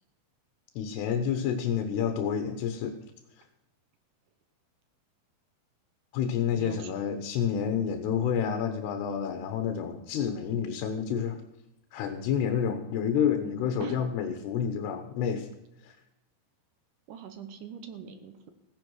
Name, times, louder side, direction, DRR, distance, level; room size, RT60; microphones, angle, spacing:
voice 1, 0.8-3.0 6.1-11.4 11.9-15.5 15.8-15.9, left 8 dB, 80° left, 7 dB, 3.2 m, -29 dB
voice 2, 6.5-6.9 13.8-14.0 17.1-18.5, right 8 dB, 70° right, 9 dB, 2.1 m, -42 dB
16.5 x 10.5 x 6.3 m, 0.91 s
omnidirectional pair, 4.8 m